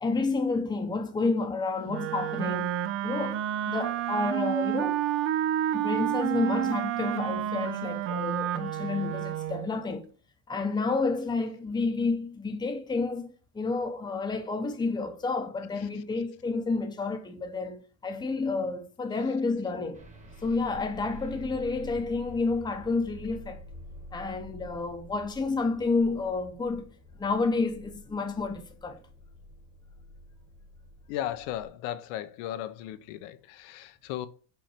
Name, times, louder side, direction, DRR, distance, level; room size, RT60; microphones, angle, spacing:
voice 1, 0.0-2.7 3.0-3.4 3.7-5.0 5.7-10.1 10.5-17.8 18.0-20.0 20.4-23.6 24.1-26.9 27.2-29.0, left 3 dB, 10° left, 0.8 m, -30 dB
Wind instrument woodwind instrument, 1.9-9.7, right 12 dB, 35° right, 0.4 m, -30 dB
sound 1, 19.9-31.7, equal, 15° right, 1.3 m, -48 dB
voice 2, 31.1-34.3, left 12 dB, 70° left, 0.8 m, -36 dB
5.6 x 4.3 x 4.2 m
cardioid pair, 145°, 46 cm